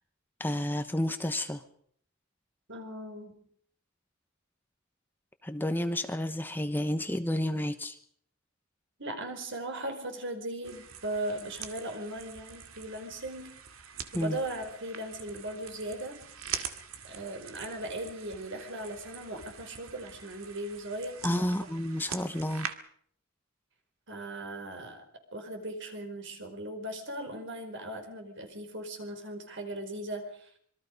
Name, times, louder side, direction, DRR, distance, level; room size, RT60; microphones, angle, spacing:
voice 1, 0.4-1.6 5.4-8.0 14.1-14.4 21.2-22.7, left 1 dB, 10° left, 8 dB, 1.0 m, -30 dB
voice 2, 2.7-3.4 9.0-13.5 14.1-16.2 17.0-21.7 24.1-25.0 25.3-30.5, right 1 dB, 60° right, 5 dB, 4.9 m, -38 dB
sound 1, 10.6-22.7, right 8 dB, 90° right, 2.2 m, -44 dB
26.0 x 23.0 x 5.3 m, 0.62 s
head